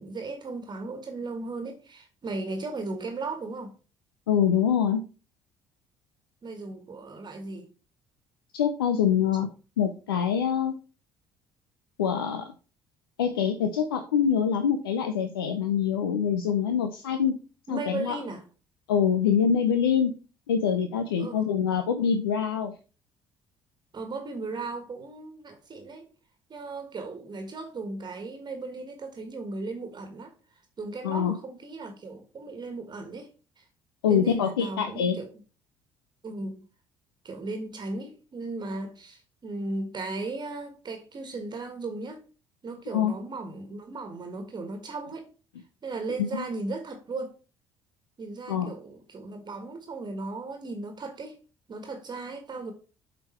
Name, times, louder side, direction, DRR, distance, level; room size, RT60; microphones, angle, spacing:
voice 1, 0.0-3.7 6.4-7.7 17.7-18.4 21.2-21.5 23.9-26.1 26.5-30.3 30.8-33.3 33.6-33.7 34.1-35.3 36.2-36.6 37.2-42.2 42.6-45.3 45.8-47.3 48.2-51.4 51.7-52.7, right 3 dB, 35° right, 1.5 m, -36 dB
voice 2, 4.3-5.0 8.5-9.5 9.8-10.7 12.0-12.4 13.2-17.4 17.7-18.2 18.9-20.1 20.5-22.7 31.0-31.4 34.0-35.2 42.9-43.1 46.3-46.4 48.5-48.7, left 7 dB, 85° left, 0.6 m, -25 dB
7.4 x 4.1 x 4.3 m
hypercardioid pair, 55°, 12 cm